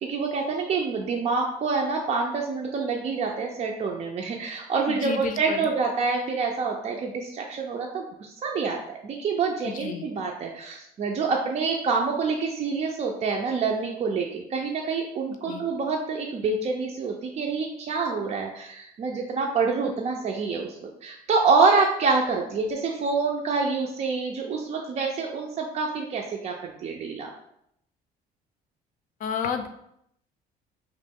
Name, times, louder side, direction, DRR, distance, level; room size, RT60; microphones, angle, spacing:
voice 1, 0.0-27.3, right 4 dB, 40° right, 0 dB, 0.4 m, -27 dB
voice 2, 4.9-5.7 9.7-10.1 15.5-15.6 29.2-29.7, left 7 dB, 50° left, 7 dB, 0.4 m, -31 dB
3.0 x 2.5 x 3.5 m, 0.76 s
cardioid pair, 110°, 17 cm